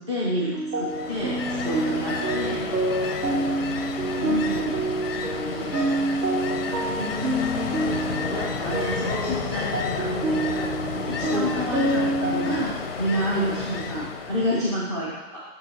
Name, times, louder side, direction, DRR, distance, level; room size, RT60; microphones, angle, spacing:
voice 1, 0.0-2.6 4.2-4.9 5.2-6.0 8.3-15.4, left 1 dB, 20° right, -6 dB, 0.4 m, -30 dB
sound 1, 0.5-12.6, right 2 dB, 80° right, 1.8 m, -27 dB
Ocean, 0.8-14.9, left 5 dB, 40° left, 0.5 m, -31 dB
voice 2, 6.7-8.0 11.3-11.7 13.4-13.5, left 1 dB, 50° right, -3 dB, 2.1 m, -33 dB
6.4 x 4.8 x 3.9 m, 1.2 s
hypercardioid pair, 145°, 48 cm